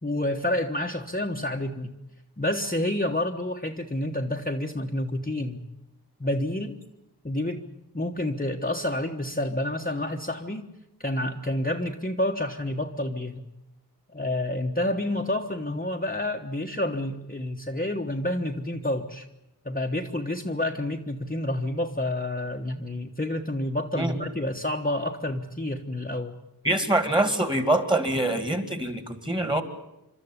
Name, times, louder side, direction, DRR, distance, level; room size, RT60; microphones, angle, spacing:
voice 1, 0.0-1.9 2.4-5.6 6.2-6.7 7.2-7.6 7.9-10.7 11.0-13.4 14.1-19.3 19.6-26.3, left 1 dB, 20° left, 1 dB, 1.3 m, -29 dB
voice 2, 26.6-29.6, right 1 dB, 10° right, 9 dB, 2.4 m, -24 dB
27.5 x 13.0 x 10.0 m, 0.90 s
wide cardioid pair, 60°, 40 cm